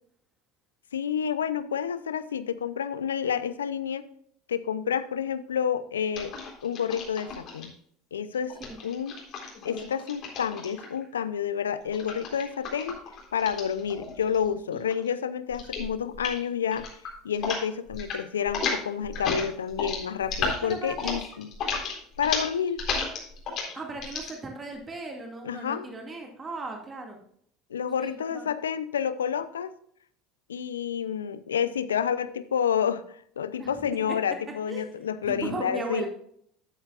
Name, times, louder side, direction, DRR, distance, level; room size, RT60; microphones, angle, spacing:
voice 1, 0.9-4.1 4.5-6.3 6.6-7.7 8.1-9.2 9.6-13.0 13.3-16.9 17.2-21.5 22.2-22.8 25.4-25.9 27.7-29.7 30.5-33.0 33.4-36.0, left 8 dB, 85° left, 14 dB, 0.6 m, -29 dB
sound 1, 6.1-7.6 8.5-11.0 11.9-14.5 14.7-15.1 15.5-15.9 16.1-16.4 16.7-17.6 17.9-18.2 18.4-24.3, left 4 dB, 50° left, 3.9 m, -33 dB
voice 2, 20.6-21.2 23.7-27.2 28.0-28.5 33.6-33.7 34.1-34.2 34.7-34.9 35.2-36.1, right 2 dB, 25° right, 2 dB, 2.2 m, -36 dB
13.0 x 8.7 x 2.5 m, 0.65 s
hypercardioid pair, 75°, 0 cm